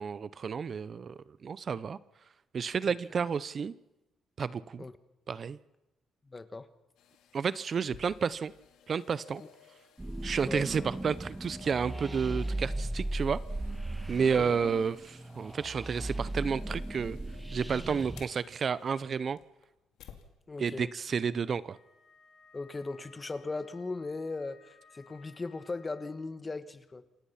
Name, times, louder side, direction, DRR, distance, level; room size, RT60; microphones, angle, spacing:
voice 1, 0.0-2.0 2.5-3.7 4.4-4.8 5.3-5.6 7.3-8.5 8.9-9.4 10.2-13.4 14.1-17.2 17.5-19.4 20.6-21.8, right 6 dB, 45° right, 17 dB, 0.7 m, -31 dB
voice 2, 6.3-6.7 10.5-10.7 14.2-14.6 20.5-20.9 22.5-27.0, left 3 dB, 25° left, 11 dB, 1.5 m, -38 dB
sound 1, 7.0-20.3 20.8-20.9, left 9 dB, 90° left, 2.5 m, -57 dB
sound 2, 10.0-18.2, right 1 dB, 10° right, 1.5 m, -37 dB
Wind instrument woodwind instrument, 21.7-26.4, left 5 dB, 70° left, 6.5 m, -60 dB
28.0 x 17.0 x 5.8 m, 0.95 s
cardioid pair, 90°, 0 cm